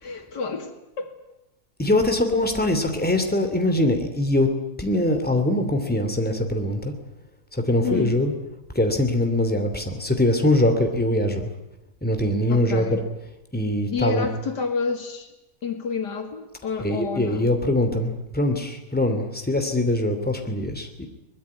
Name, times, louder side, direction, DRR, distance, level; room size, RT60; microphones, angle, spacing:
voice 1, 0.0-1.1 7.8-8.2 12.5-13.0 13.9-15.3 15.6-17.5, left 5 dB, 90° left, 6 dB, 3.0 m, -29 dB
voice 2, 1.8-4.5 4.8-6.9 7.5-8.3 8.7-11.5 12.0-12.9 13.5-14.2 16.8-21.0, left 1 dB, 5° left, 5 dB, 2.7 m, -22 dB
22.5 x 21.0 x 9.7 m, 0.90 s
omnidirectional pair, 1.8 m